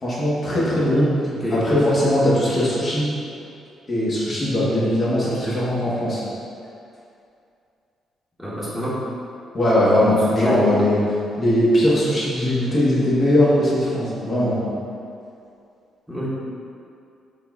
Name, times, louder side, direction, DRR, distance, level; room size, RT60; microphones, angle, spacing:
voice 1, 0.0-1.1 1.5-3.1 3.9-6.2 9.5-11.0 11.4-14.6, left 1 dB, 45° left, -8 dB, 1.3 m, -20 dB
voice 2, 5.2-5.5 8.4-9.0 10.3-10.6 16.1-16.3, equal, 5° right, -10 dB, 1.0 m, -26 dB
4.0 x 3.6 x 2.4 m, 2.5 s
hypercardioid pair, 45°, 0 cm